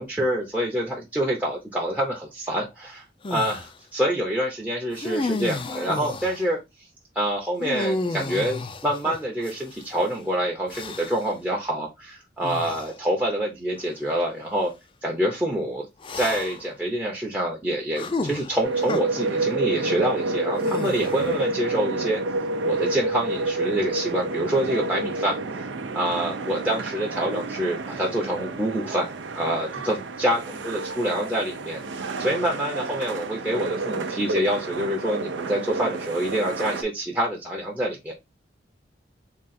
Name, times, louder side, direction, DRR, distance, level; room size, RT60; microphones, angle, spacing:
voice 1, 0.0-3.0 3.3-6.6 7.1-14.7 15.0-15.9 16.2-22.2 22.6-25.6 25.9-38.1, right 1 dB, 10° right, -3 dB, 0.6 m, -26 dB
sound 1, 3.2-3.7 4.9-6.5 7.6-9.9 10.7-11.3 12.4-12.9 13.8-13.9 16.0-16.7 18.0-19.0 20.6-21.4, left 2 dB, 30° left, 0.3 m, -32 dB
sound 2, 18.6-36.8, right 2 dB, 85° right, 0.6 m, -29 dB
3.7 x 2.4 x 4.1 m, 0.22 s
head